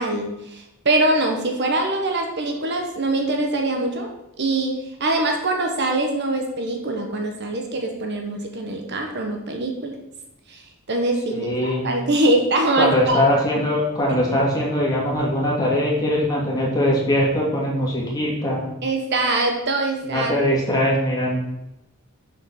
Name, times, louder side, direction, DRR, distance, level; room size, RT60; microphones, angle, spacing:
voice 1, 0.0-4.1 4.4-4.7 5.0-10.0 10.5-10.6 10.9-13.2 18.8-20.3, right 2 dB, 50° right, 2 dB, 1.2 m, -23 dB
voice 2, 11.3-11.8 12.8-18.7 20.0-21.4, left 1 dB, 15° left, -4 dB, 2.5 m, -21 dB
6.6 x 6.6 x 6.4 m, 0.91 s
head